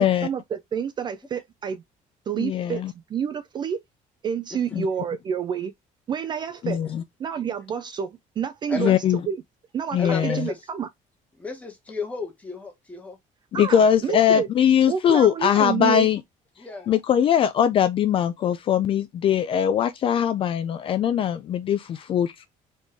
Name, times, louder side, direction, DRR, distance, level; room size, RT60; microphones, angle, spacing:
voice 1, 0.0-1.8 2.3-2.8 3.1-3.8 4.2-5.7 6.1-6.8 7.2-9.4 9.7-10.9 13.5-14.5 14.9-16.1, right 7 dB, 30° right, 0.3 m, -29 dB
voice 2, 2.4-2.9 4.7-4.9 6.6-7.0 8.8-9.2 9.9-10.5 13.6-16.2 16.9-22.5, left 9 dB, 40° left, 0.4 m, -21 dB
voice 3, 10.0-10.6 11.4-13.2 16.6-16.9, left 4 dB, 10° left, 1.4 m, -33 dB
4.2 x 3.1 x 3.4 m
cardioid pair, 170°, 15 cm